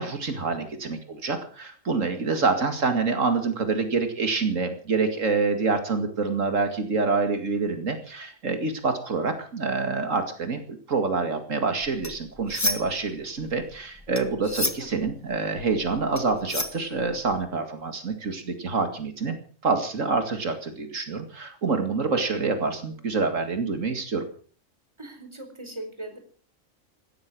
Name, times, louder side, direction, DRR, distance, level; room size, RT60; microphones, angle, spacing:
voice 1, 0.0-10.6 10.9-19.4 19.6-24.2, right 4 dB, 80° right, 6 dB, 2.5 m, -26 dB
voice 2, 2.3-2.7 14.8-15.1 22.9-23.0 25.0-26.2, right 1 dB, 20° right, 5 dB, 4.5 m, -40 dB
sound 1, 11.8-13.1 13.4-17.4, left 1 dB, 15° left, 1.3 m, -31 dB
17.0 x 13.5 x 6.2 m, 0.43 s
omnidirectional pair, 1.3 m